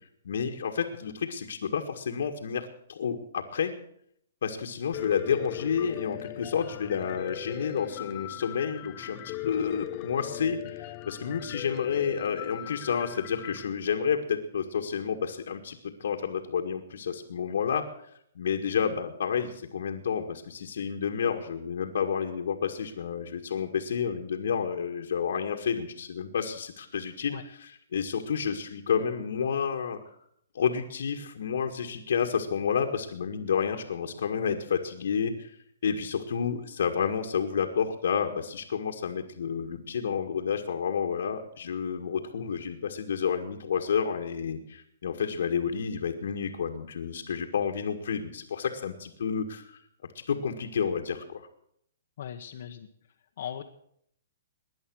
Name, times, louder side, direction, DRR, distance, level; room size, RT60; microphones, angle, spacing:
voice 1, 0.2-3.7 4.4-17.9 18.4-30.2 30.5-35.5 35.8-49.8 50.3-51.5, left 7 dB, 70° left, 2 dB, 1.9 m, -30 dB
Piano, 4.9-13.6, left 14 dB, 30° left, 0.9 m, -39 dB
voice 2, 52.2-52.9 53.4-53.6, left 9 dB, 55° left, 1 dB, 1.4 m, -38 dB
19.0 x 10.5 x 6.4 m, 0.70 s
hypercardioid pair, 155°, 0 cm